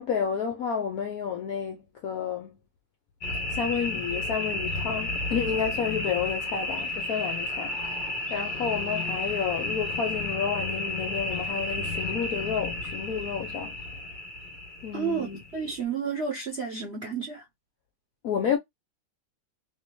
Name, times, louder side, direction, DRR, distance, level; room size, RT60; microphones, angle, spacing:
voice 1, 0.0-2.6 3.5-13.7 14.8-15.4 18.2-18.6, left 7 dB, 75° left, 0.8 m, -30 dB
sound 1, 3.2-15.8, left 2 dB, 45° left, 0.6 m, -32 dB
voice 2, 14.9-15.3 15.5-17.4, right 6 dB, 60° right, 0.6 m, -31 dB
3.6 x 2.8 x 3.0 m
omnidirectional pair, 2.3 m